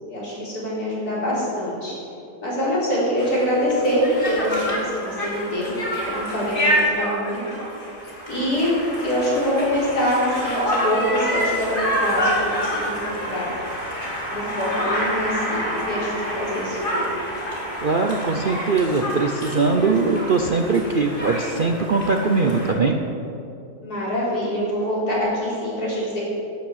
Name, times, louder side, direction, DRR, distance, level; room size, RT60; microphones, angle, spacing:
voice 1, 0.1-1.9 2.4-5.7 6.1-7.4 8.3-13.5 14.3-17.0 23.8-26.2, equal, 80° left, -7 dB, 4.6 m, -24 dB
Conversation, 3.2-22.7, equal, 35° left, 2.4 m, -28 dB
voice 2, 17.8-23.0, right 3 dB, 50° right, 3 dB, 0.6 m, -21 dB
11.5 x 8.8 x 7.5 m, 2.7 s
omnidirectional pair, 1.6 m